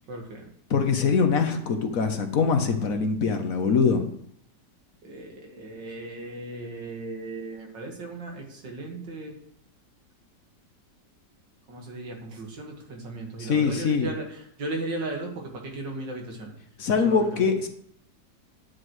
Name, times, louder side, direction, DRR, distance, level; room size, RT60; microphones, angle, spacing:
voice 1, 0.1-0.5 5.0-9.4 11.7-16.5 17.0-17.4, right 2 dB, 85° right, 1 dB, 2.4 m, -36 dB
voice 2, 0.7-4.0 13.4-14.1 16.8-17.7, left 5 dB, 55° left, 6 dB, 1.2 m, -23 dB
11.0 x 9.4 x 3.2 m, 0.69 s
omnidirectional pair, 1.9 m